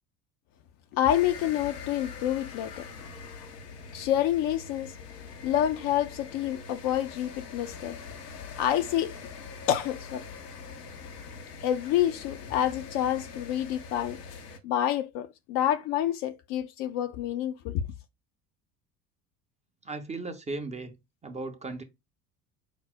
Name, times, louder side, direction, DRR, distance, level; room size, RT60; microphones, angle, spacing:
voice 1, 0.9-2.9 3.9-4.9 5.4-8.0 8.6-9.1 9.7-10.2 11.6-14.2 14.6-17.8, left 11 dB, 45° left, 0.5 m, -28 dB
sound 1, 1.1-14.6, left 5 dB, 75° left, 0.8 m, -43 dB
voice 2, 19.8-21.0 21.2-21.8, right 3 dB, 15° right, 0.5 m, -36 dB
4.8 x 2.0 x 4.1 m
figure-of-eight pair, 65°, 48 cm